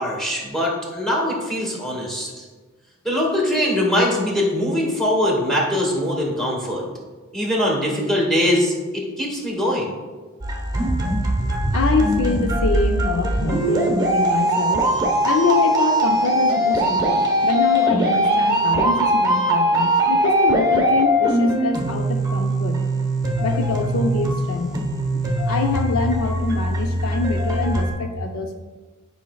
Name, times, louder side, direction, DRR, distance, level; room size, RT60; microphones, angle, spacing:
voice 1, 0.0-2.4 3.0-6.8 7.3-9.9, left 1 dB, ahead, -4 dB, 1.8 m, -22 dB
sound 1, 10.4-27.9, equal, 20° right, 1.0 m, -21 dB
voice 2, 11.7-14.9 15.2-22.9 23.4-24.8 25.1-28.5, left 3 dB, 65° left, 4 dB, 0.6 m, -25 dB
10.5 x 5.4 x 2.3 m, 1.3 s
head